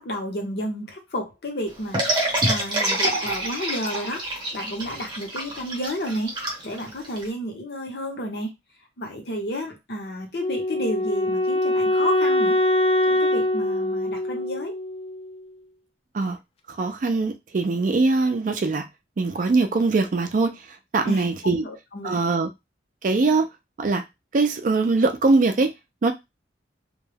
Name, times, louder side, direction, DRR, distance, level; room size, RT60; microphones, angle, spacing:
voice 1, 0.0-4.2 4.5-6.3 6.6-8.5 9.0-12.6 13.1-14.7 21.0-22.2, equal, 60° left, 0.8 m, -31 dB
sound 1, 1.9-7.3, right 1 dB, 25° right, 0.8 m, -26 dB
Wind instrument woodwind instrument, 10.4-15.4, left 1 dB, 30° left, 0.3 m, -23 dB
voice 2, 16.7-18.9 19.2-20.5 20.9-21.6 22.0-22.5 23.0-23.5 23.8-24.0 24.3-25.7 26.0-26.1, right 3 dB, 45° right, 0.4 m, -22 dB
2.2 x 2.1 x 3.2 m
head